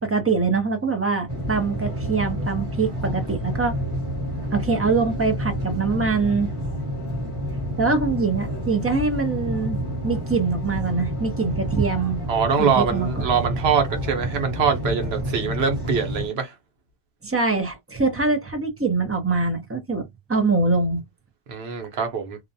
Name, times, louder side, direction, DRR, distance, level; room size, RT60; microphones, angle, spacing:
voice 1, 0.0-3.8 4.5-6.5 7.8-9.8 10.0-12.2 12.6-13.1 17.2-21.0, right 4 dB, 15° right, 0.6 m, -23 dB
sound 1, 1.3-16.3, equal, 35° right, 1.2 m, -29 dB
voice 2, 12.3-16.5 21.5-22.4, right 6 dB, 80° right, 1.0 m, -23 dB
2.5 x 2.1 x 2.6 m
omnidirectional pair, 1.0 m